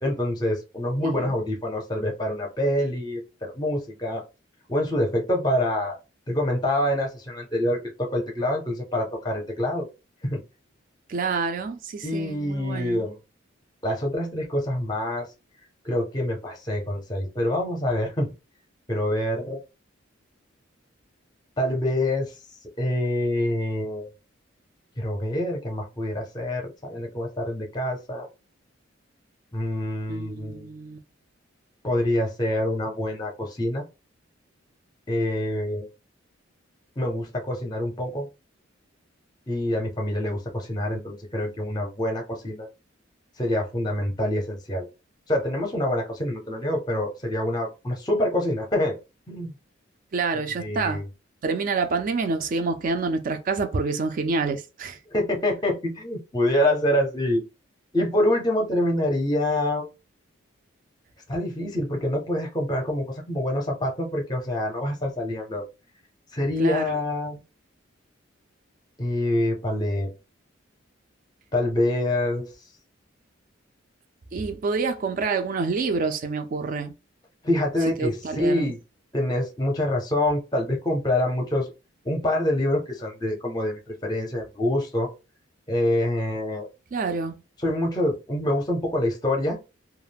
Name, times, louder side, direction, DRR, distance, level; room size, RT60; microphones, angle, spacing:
voice 1, 0.0-4.3 4.7-6.0 6.3-9.9 10.2-10.4 12.0-13.2 13.8-15.3 15.8-18.3 18.9-19.6 21.6-22.3 22.8-24.1 25.0-28.3 29.5-30.7 31.8-33.8 35.1-35.9 37.0-38.3 39.5-42.7 43.4-44.9 45.3-49.0 49.3-49.5 50.6-51.0 55.1-57.4 57.9-59.9 61.3-65.7 66.3-67.4 69.0-70.1 71.5-72.5 77.4-78.8 79.1-81.7 82.0-85.1 85.7-86.7 87.6-89.6, left 1 dB, 20° left, 0.5 m, -26 dB
voice 2, 1.0-1.3 11.1-13.1 30.1-31.0 50.1-51.0 51.4-55.0 66.6-67.0 74.3-76.9 78.0-78.7 86.9-87.4, right 4 dB, 45° right, 0.3 m, -27 dB
2.3 x 2.0 x 3.3 m
head